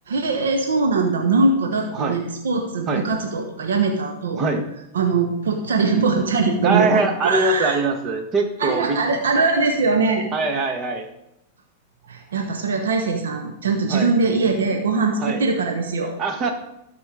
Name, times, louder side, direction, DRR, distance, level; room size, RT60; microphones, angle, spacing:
voice 1, 0.1-4.4 4.9-7.8 8.6-10.3 12.1-16.2, right 4 dB, 85° right, 4 dB, 1.1 m, -21 dB
voice 2, 4.4-4.7 6.6-9.0 10.3-11.0 13.9-14.1 15.2-15.4 16.2-16.5, right 3 dB, 35° right, 5 dB, 1.6 m, -22 dB
13.0 x 4.5 x 5.0 m, 0.83 s
hypercardioid pair, 115°, 0 cm